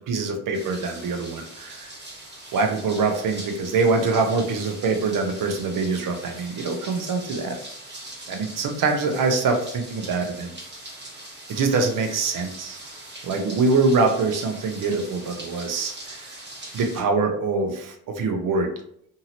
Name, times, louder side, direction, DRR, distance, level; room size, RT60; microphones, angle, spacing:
voice 1, 0.1-1.9 2.5-7.6 8.3-10.5 11.5-12.8 13.2-16.4 16.7-18.7, right 4 dB, 60° right, 4 dB, 0.8 m, -24 dB
sound 1, 0.5-17.0, right 1 dB, 30° right, 1.3 m, -41 dB
2.7 x 2.7 x 2.9 m, 0.68 s
supercardioid pair, 80°, 38 cm